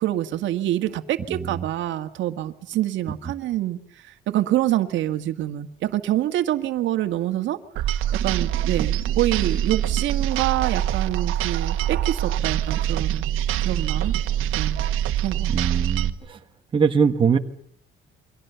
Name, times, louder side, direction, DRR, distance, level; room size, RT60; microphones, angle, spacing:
voice 1, 0.0-7.6 8.1-13.3 13.6-14.2 14.6-14.8 15.2-15.7, right 13 dB, 70° right, 8 dB, 1.8 m, -26 dB
voice 2, 1.3-1.6 15.5-16.4 16.7-17.4, right 6 dB, 25° right, 4 dB, 1.5 m, -22 dB
sound 1, 7.8-16.1, right 11 dB, 90° right, 1.5 m, -24 dB
29.0 x 24.0 x 6.9 m, 0.66 s
cardioid pair, 170°, 20 cm